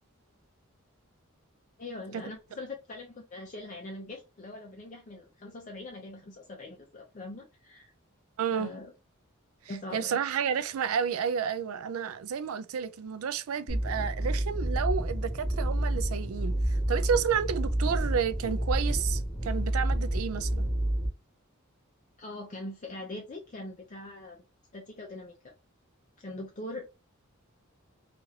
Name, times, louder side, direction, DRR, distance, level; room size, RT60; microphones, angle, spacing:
voice 1, 1.8-7.9 8.5-8.9 9.7-10.2 22.2-24.4 24.7-25.5 26.2-26.8, left 2 dB, 35° left, 0.5 m, -42 dB
voice 2, 8.4-8.7 9.9-20.7, right 7 dB, 80° right, 0.4 m, -31 dB
sound 1, 13.7-21.1, right 1 dB, 5° left, 0.8 m, -29 dB
3.1 x 2.4 x 2.8 m
head